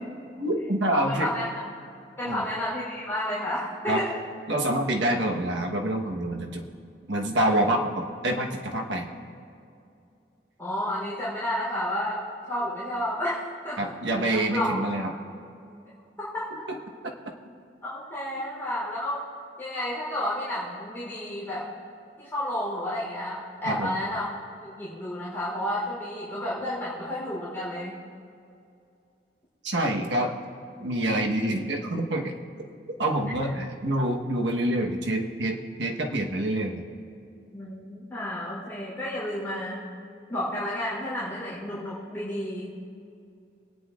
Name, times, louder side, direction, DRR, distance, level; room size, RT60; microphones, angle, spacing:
voice 1, 0.4-1.3 2.2-2.4 3.9-4.0 4.5-6.6 7.1-9.1 13.8-15.1 23.6-23.9 29.6-30.3 30.8-32.3 33.0-36.8, right 1 dB, 90° right, 1 dB, 1.2 m, -26 dB
voice 2, 0.9-1.4 2.2-4.1 10.6-12.2 12.5-13.9 14.2-14.7 16.2-16.6 17.8-19.2 19.6-21.7 22.2-24.3 24.6-27.9 37.5-39.8 40.3-42.7, left 1 dB, 15° left, -9 dB, 3.5 m, -31 dB
26.5 x 9.6 x 2.5 m, 2.5 s
head